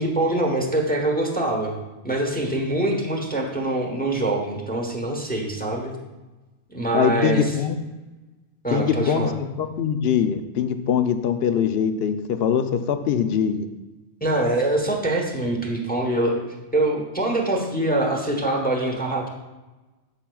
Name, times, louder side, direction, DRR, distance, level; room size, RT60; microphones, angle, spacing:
voice 1, 0.0-1.8 2.0-5.9 6.7-7.5 8.6-9.3 14.2-16.4 16.7-19.3, right 2 dB, 10° left, 1 dB, 0.9 m, -24 dB
voice 2, 6.9-7.8 8.7-12.1 12.4-13.7, left 8 dB, 65° left, 9 dB, 0.7 m, -22 dB
12.5 x 5.7 x 2.3 m, 1.1 s
omnidirectional pair, 1.3 m